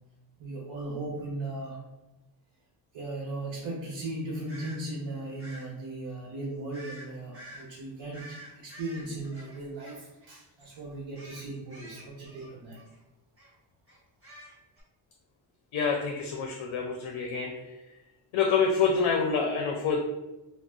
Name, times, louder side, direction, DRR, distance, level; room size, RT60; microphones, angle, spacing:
voice 1, 0.4-1.8 2.9-12.8, right 2 dB, 85° right, -4 dB, 0.8 m, -37 dB
sound 1, 4.5-4.8 5.4-5.7 6.7-7.1 7.3-7.6 8.1-10.3 10.6-10.8 11.1-13.0 13.4-13.5 13.9-14.8, right 1 dB, 30° right, 1.1 m, -48 dB
voice 2, 15.7-17.5 18.3-20.0, left 5 dB, 80° left, 1 dB, 0.5 m, -26 dB
2.4 x 2.0 x 3.6 m, 1.0 s
wide cardioid pair, 140°, 47 cm